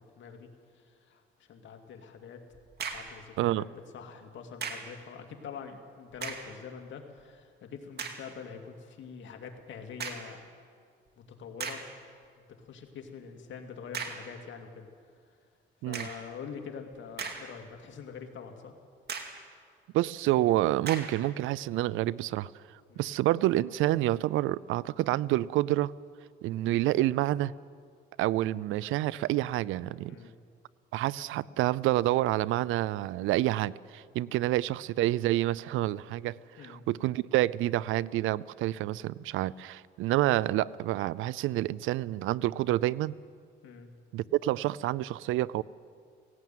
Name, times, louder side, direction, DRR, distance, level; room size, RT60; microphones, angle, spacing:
voice 1, 0.1-2.4 2.9-3.7 3.9-10.4 11.2-11.8 12.5-14.9 15.3-15.5 15.9-18.7 22.9-23.1 30.1-30.3 36.6-36.8 43.6-43.9, left 6 dB, 70° left, 4 dB, 2.5 m, -45 dB
sound 1, 2.5-3.2 4.6-5.0 6.1-6.6 7.2-7.3 8.0-8.3 10.0-10.4 11.1-11.2 11.6-12.0 13.9-14.3 15.9-16.3 16.9-17.7 18.1-18.2 19.1-19.5 20.8-21.2, right 5 dB, 55° right, 2.2 m, -38 dB
voice 2, 19.9-22.5 23.0-25.9 26.4-27.5 28.2-30.2 30.9-36.4 36.6-43.1 44.1-45.6, right 15 dB, 90° right, 21 dB, 0.5 m, -28 dB
17.5 x 17.0 x 9.3 m, 2.1 s
cardioid pair, 90°, 20 cm